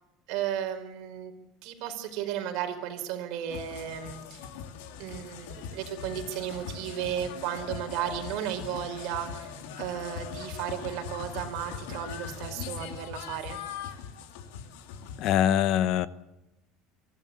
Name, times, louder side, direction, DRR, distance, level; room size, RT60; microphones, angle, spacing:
voice 1, 0.3-1.3 1.6-4.5 5.0-9.5 9.8-13.6, right 10 dB, 55° right, 4 dB, 4.9 m, -34 dB
sound 1, 3.5-15.4, left 7 dB, 85° left, 2.7 m, -40 dB
voice 2, 15.2-16.1, left 11 dB, 45° left, 16 dB, 0.9 m, -23 dB
24.0 x 16.0 x 8.6 m, 0.95 s
cardioid pair, 165°, 0 cm